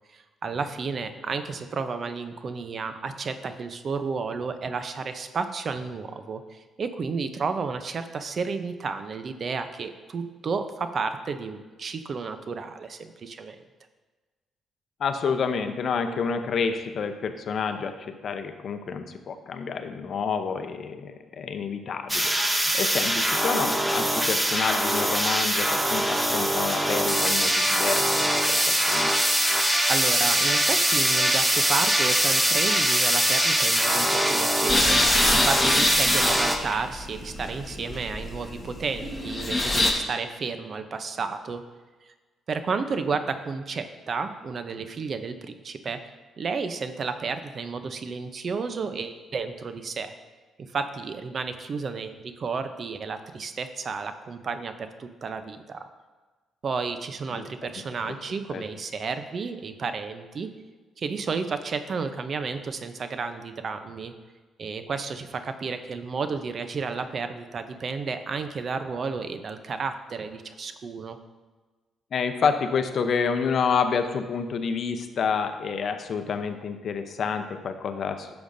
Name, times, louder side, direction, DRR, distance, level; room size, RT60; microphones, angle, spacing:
voice 1, 0.1-13.6 29.9-41.6 42.5-46.0 46.4-50.1 50.7-55.8 56.6-60.5 61.0-64.1 64.6-71.2, right 5 dB, 50° right, 9 dB, 0.6 m, -32 dB
voice 2, 15.0-29.2 57.3-57.5 58.1-58.2 58.5-58.6 72.1-78.4, left 6 dB, 55° left, 7 dB, 0.7 m, -29 dB
sound 1, 22.1-36.6, right 1 dB, 10° right, 0.9 m, -23 dB
sound 2, 34.7-39.9, left 2 dB, 15° left, 1.4 m, -26 dB
11.0 x 7.0 x 2.7 m, 1.3 s
cardioid pair, 90°, 0 cm